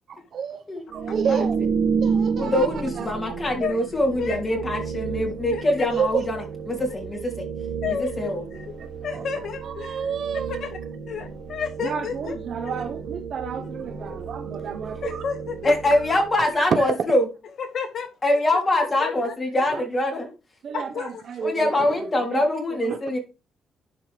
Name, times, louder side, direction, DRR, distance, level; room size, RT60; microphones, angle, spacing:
voice 1, 0.1-0.6 0.9-1.6 2.0-2.7 3.0-3.7 5.9-6.3 8.8-8.9 9.1-9.2 9.6-10.7 11.8-15.2 16.6-16.9 19.7-19.8 20.6-22.4 22.7-23.0, right 7 dB, 60° right, 1.0 m, -30 dB
sound 1, 0.9-16.7, right 6 dB, 85° right, 2.4 m, -31 dB
voice 2, 2.4-6.4 6.7-7.5 8.2-8.4 14.0-14.1 15.0-15.1 15.6-17.2 18.2-20.3 21.4-23.2, left 1 dB, 30° left, 3.3 m, -23 dB
voice 3, 4.2-4.6 5.5-5.9 7.8-8.8 9.0-10.0 10.5-10.8 11.1-12.4 12.6-12.8 15.0-15.8 17.6-18.1 19.0-19.3 20.7-21.2, left 6 dB, 60° left, 1.8 m, -31 dB
11.0 x 4.6 x 3.4 m
cardioid pair, 90°, 0 cm